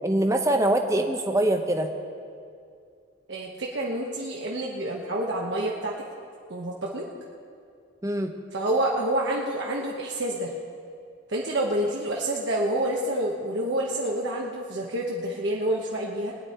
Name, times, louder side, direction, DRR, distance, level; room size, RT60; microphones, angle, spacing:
voice 1, 0.0-1.9 8.0-8.3, right 1 dB, 15° right, 4 dB, 0.8 m, -23 dB
voice 2, 3.3-5.9 6.5-7.1 8.5-10.5 11.3-16.4, right 1 dB, 60° right, -2 dB, 1.1 m, -28 dB
22.0 x 9.7 x 4.4 m, 2.4 s
head